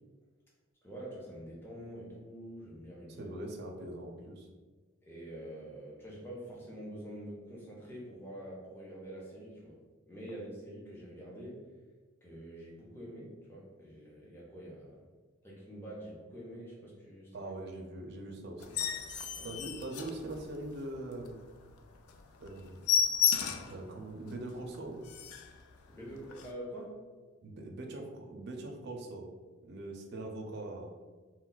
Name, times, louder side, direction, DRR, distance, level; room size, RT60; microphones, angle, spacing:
voice 1, 0.8-3.3 5.0-9.8 10.1-11.7 12.2-15.0 15.4-17.5 19.3-19.6 25.9-27.0, right 1 dB, 10° left, -6 dB, 0.5 m, -46 dB
voice 2, 3.2-4.5 17.3-18.8 19.4-21.5 22.4-22.8 23.5-25.0 27.4-29.3 29.6-30.9, right 2 dB, 50° right, 2 dB, 0.4 m, -42 dB
sound 1, 18.6-20.8 21.2-21.3 21.7-21.8 22.1-22.2 22.5-23.8 24.3-24.4 24.7-24.8 25.0-25.6 26.3-26.5, left 8 dB, 80° left, 0.3 m, -32 dB
2.2 x 2.1 x 3.8 m, 1.3 s
head